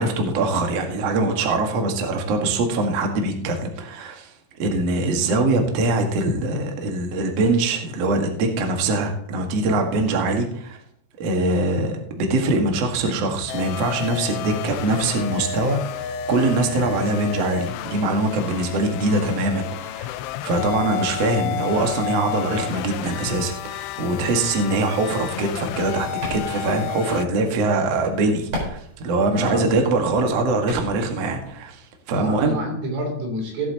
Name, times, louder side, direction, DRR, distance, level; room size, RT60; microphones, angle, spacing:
voice 1, 0.0-4.3 4.6-10.8 11.2-20.1 20.4-32.5, right 2 dB, 60° right, 3 dB, 1.7 m, -23 dB
sound 1, 13.5-27.3, left 10 dB, 85° left, 2.9 m, -31 dB
sound 2, 25.6-31.5, right 1 dB, 45° right, 5.5 m, -37 dB
voice 2, 29.1-29.7 32.1-33.7, right 1 dB, 85° right, 0 dB, 5.7 m, -28 dB
18.0 x 8.6 x 2.9 m, 0.69 s
omnidirectional pair, 5.5 m